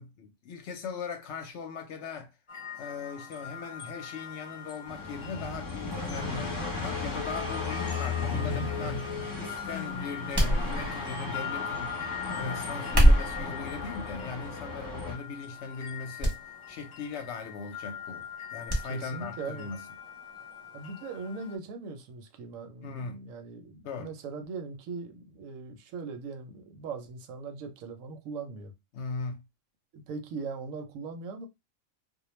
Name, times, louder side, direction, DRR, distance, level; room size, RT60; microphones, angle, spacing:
voice 1, 0.0-2.3 2.7-16.4 16.7-18.3 18.5-19.8 22.8-23.2 23.8-24.1 28.9-29.4, left 5 dB, 70° left, 0.8 m, -39 dB
sound 1, 2.5-21.6, left 7 dB, 45° left, 0.4 m, -42 dB
sound 2, 4.9-15.1, left 4 dB, 20° left, 0.7 m, -35 dB
sound 3, 10.3-11.2 12.8-13.5 14.3-14.6 15.1-15.2 16.2-16.4 16.7-16.8 18.7-18.9 19.2-19.3, equal, 25° right, 0.6 m, -23 dB
voice 2, 18.9-19.7 20.7-28.7 29.9-31.5, right 4 dB, 85° right, 1.0 m, -40 dB
2.3 x 2.1 x 3.0 m
omnidirectional pair, 1.3 m